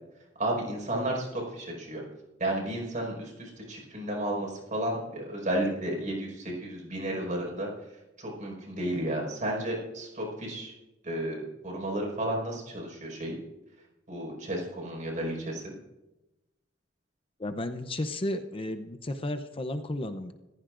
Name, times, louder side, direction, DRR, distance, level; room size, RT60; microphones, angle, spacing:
voice 1, 0.4-2.0 2.4-7.7 8.2-10.7 11.0-13.3 14.1-15.7, right 1 dB, 40° right, -1 dB, 5.3 m, -32 dB
voice 2, 17.4-20.3, left 1 dB, 30° left, 8 dB, 0.7 m, -33 dB
25.5 x 15.0 x 2.6 m, 1.0 s
head